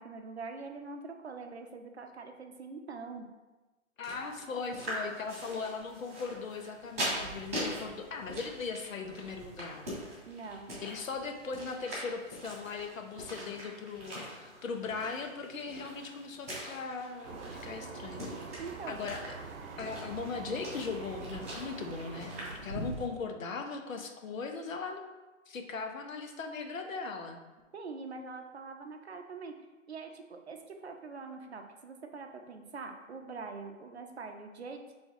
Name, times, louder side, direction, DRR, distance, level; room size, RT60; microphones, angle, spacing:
voice 1, 0.0-3.3 10.3-10.7 18.6-19.0 27.7-29.5 29.9-34.8, right 4 dB, 55° right, 5 dB, 0.6 m, -44 dB
voice 2, 4.0-9.8 10.8-18.6 18.9-19.2 19.8-25.0 25.5-27.4, left 4 dB, 80° left, 5 dB, 0.8 m, -39 dB
sound 1, 4.0-23.0, equal, 10° right, 0.8 m, -42 dB
sound 2, 17.2-22.8, right 5 dB, 85° right, 0.7 m, -45 dB
3.9 x 3.4 x 3.9 m, 1.2 s
hypercardioid pair, 180°, 39 cm